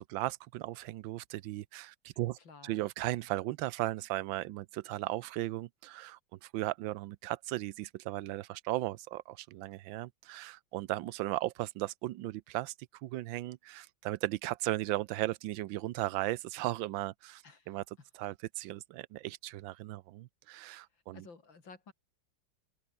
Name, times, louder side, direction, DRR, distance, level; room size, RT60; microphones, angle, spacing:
voice 1, 0.0-2.4 2.6-12.7 13.0-17.8 18.2-21.2, right 16 dB, 80° right, 1.4 m, -36 dB
voice 2, 2.4-2.8 17.4-17.8 20.7-21.9, left 4 dB, 70° left, 4.1 m, -54 dB
omnidirectional pair, 2.2 m